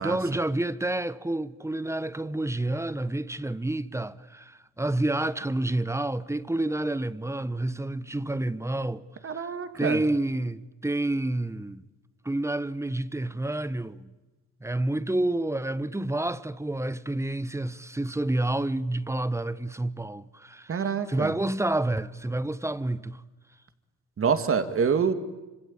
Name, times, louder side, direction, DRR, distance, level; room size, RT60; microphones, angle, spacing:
voice 1, 0.0-9.0 9.3-9.5 9.7-11.8 12.2-14.1 14.6-23.2, right 1 dB, 10° right, 1.0 m, -29 dB
voice 2, 9.2-10.0 20.7-21.3 24.2-25.1, right 6 dB, 45° right, 2.4 m, -26 dB
25.5 x 25.5 x 8.8 m
cardioid pair, 90°, 30 cm